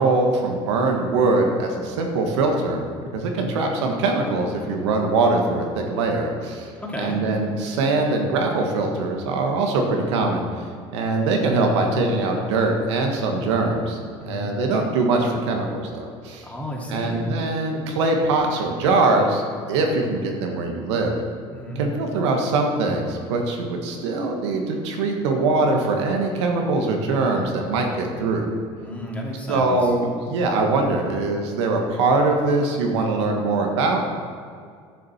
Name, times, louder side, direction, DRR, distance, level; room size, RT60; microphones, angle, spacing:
voice 1, 0.0-2.8 3.1-6.7 7.0-10.4 10.9-14.0 14.3-16.5 16.9-19.4 19.7-21.2 21.8-28.4 29.5-34.1, right 3 dB, 90° right, 2 dB, 1.6 m, -22 dB
voice 2, 3.2-3.5 6.8-7.2 14.2-14.5 16.4-17.3 21.5-21.8 28.8-29.9, equal, 10° left, -3 dB, 2.7 m, -32 dB
10.5 x 6.7 x 5.8 m, 2.1 s
supercardioid pair, 85°, 14 cm